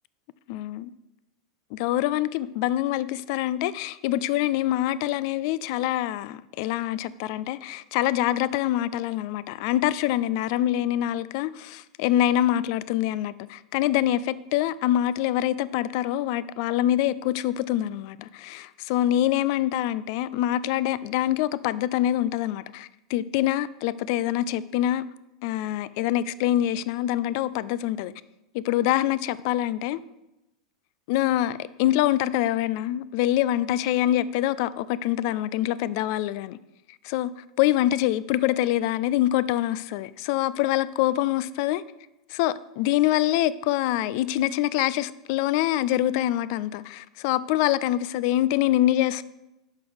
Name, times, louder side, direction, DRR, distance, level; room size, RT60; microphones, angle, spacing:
voice 1, 0.5-0.9 1.7-25.0 25.4-28.1 28.5-30.0 31.1-36.6 37.0-41.8 42.3-49.2, left 13 dB, 45° left, 0.4 m, -25 dB
11.0 x 6.2 x 3.4 m
figure-of-eight pair, 90°, 3 cm